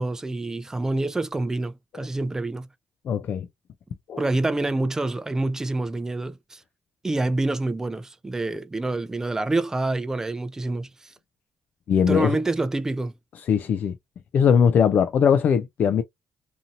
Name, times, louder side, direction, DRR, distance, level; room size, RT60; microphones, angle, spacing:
voice 1, 0.0-2.7 4.2-6.6 7.0-11.1 12.1-13.1, right 2 dB, 15° right, 0.4 m, -27 dB
voice 2, 3.1-3.5 4.1-4.2 11.9-12.4 13.5-13.9 14.3-16.0, left 7 dB, 60° left, 0.3 m, -20 dB
2.7 x 2.6 x 2.5 m
cardioid pair, 100°, 3 cm